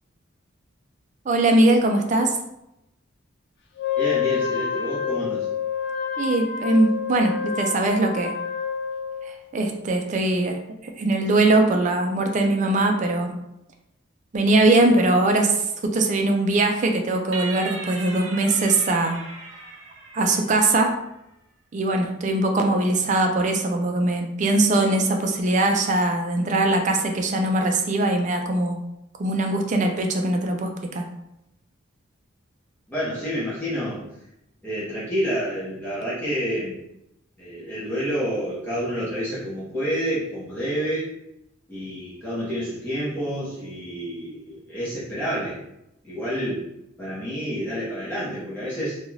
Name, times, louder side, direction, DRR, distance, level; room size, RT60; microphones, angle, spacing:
voice 1, 1.3-2.4 6.2-8.3 9.3-10.6 11.0-13.3 14.3-19.2 20.1-20.9 21.7-28.8 29.2-31.1, right 2 dB, 35° right, 4 dB, 0.3 m, -21 dB
Wind instrument woodwind instrument, 3.8-9.4, left 8 dB, 55° left, 0.4 m, -28 dB
voice 2, 4.0-5.5 32.9-34.0 34.6-36.8 37.4-41.1 41.7-45.6 46.0-46.6 47.0-49.0, equal, 10° left, -10 dB, 0.8 m, -28 dB
sound 1, 17.3-20.9, right 3 dB, 75° right, 0.7 m, -37 dB
2.5 x 2.3 x 3.1 m, 0.85 s
head